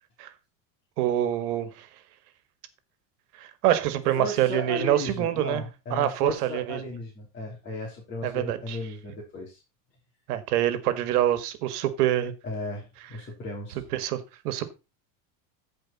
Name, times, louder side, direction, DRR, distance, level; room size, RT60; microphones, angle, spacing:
voice 1, 1.0-1.9 3.4-5.6 5.9-6.8 8.2-8.8 10.3-12.3 13.9-14.6, right 12 dB, 90° right, 1.8 m, -26 dB
voice 2, 4.2-9.6 12.4-13.8, left 2 dB, 25° left, 3.3 m, -35 dB
15.0 x 5.1 x 4.1 m
cardioid pair, 165°, 45 cm